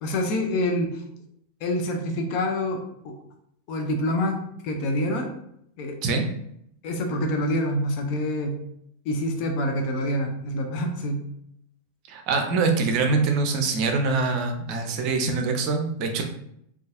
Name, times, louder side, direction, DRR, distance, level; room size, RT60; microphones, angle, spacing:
voice 1, 0.0-1.0 1.6-3.2 3.7-5.3 5.8-6.0 6.8-8.6 9.0-11.3, left 1 dB, 45° left, 3 dB, 0.6 m, -26 dB
voice 2, 12.1-16.2, right 4 dB, 40° right, 4 dB, 0.5 m, -24 dB
3.9 x 2.4 x 2.4 m, 0.73 s
figure-of-eight pair, 90°, 0 cm